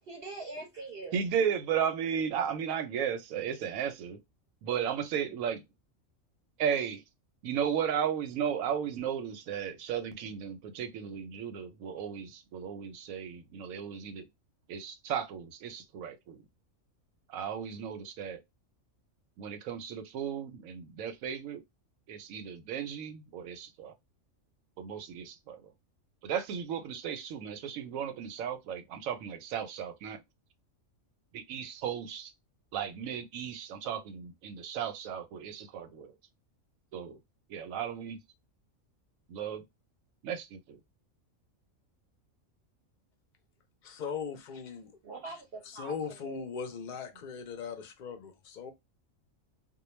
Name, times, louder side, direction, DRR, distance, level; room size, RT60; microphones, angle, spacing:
voice 1, 0.0-1.2 45.0-45.9 46.2-46.4, right 3 dB, 55° right, 0.7 m, -42 dB
voice 2, 1.1-4.2 4.6-5.6 6.6-7.0 7.4-14.3 14.7-16.4 17.3-18.4 19.4-21.6 22.1-23.9 24.8-25.7 26.2-30.2 31.3-32.3 32.7-36.1 36.9-37.2 37.5-38.2 39.3-39.6 40.2-40.8, right 8 dB, 90° right, 1.0 m, -35 dB
voice 3, 43.8-44.9 45.7-48.7, left 6 dB, 55° left, 0.5 m, -39 dB
2.2 x 2.2 x 3.0 m
omnidirectional pair, 1.4 m